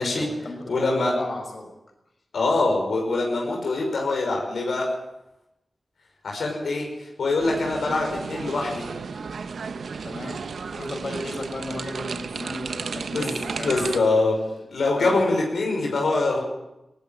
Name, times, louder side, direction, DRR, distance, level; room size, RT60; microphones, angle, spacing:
voice 1, 0.0-1.7 10.0-10.4 10.7-14.0 15.0-15.2, left 1 dB, 60° left, 3 dB, 5.8 m, -35 dB
voice 2, 0.7-1.1 2.3-4.9 6.2-8.8 13.1-13.3 13.6-14.4 14.7-16.4, left 3 dB, 85° left, 0 dB, 5.8 m, -24 dB
sound 1, 7.4-14.0, right 5 dB, 85° right, 1.0 m, -33 dB
19.5 x 17.5 x 9.1 m, 0.92 s
cardioid pair, 55°, 0 cm